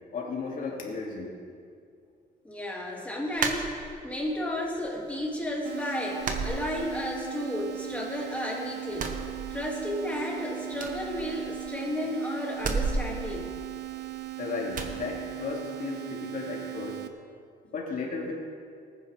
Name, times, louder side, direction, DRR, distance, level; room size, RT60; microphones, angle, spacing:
voice 1, 0.1-1.4 14.4-17.1 17.7-18.3, left 4 dB, 55° left, -2 dB, 2.8 m, -34 dB
voice 2, 2.4-9.2 9.5-13.5, left 1 dB, 10° left, -3 dB, 2.7 m, -33 dB
sound 1, 3.4-4.3 4.6-5.3 5.6-5.8 6.2-7.3 7.6-8.4 8.9-10.0 10.3-10.4 10.7-11.9 12.5-14.2 14.7-15.0, right 4 dB, 50° right, 1.2 m, -33 dB
sound 2, 5.6-17.1, right 18 dB, 75° right, 0.8 m, -39 dB
19.0 x 9.6 x 3.6 m, 2.3 s
cardioid pair, 110°, 17 cm